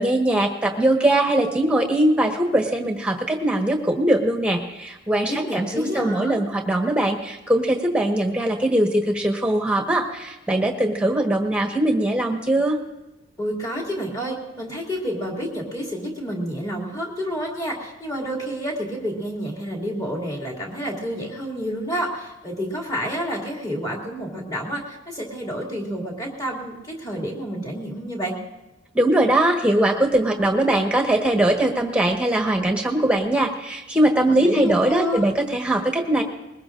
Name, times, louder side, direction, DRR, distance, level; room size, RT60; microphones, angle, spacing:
voice 1, 0.0-12.8 28.9-36.2, right 1 dB, 5° right, 2 dB, 1.4 m, -21 dB
voice 2, 5.3-6.4 13.4-28.4 34.4-35.3, equal, 20° left, -2 dB, 2.6 m, -29 dB
21.0 x 20.0 x 2.6 m, 1.0 s
head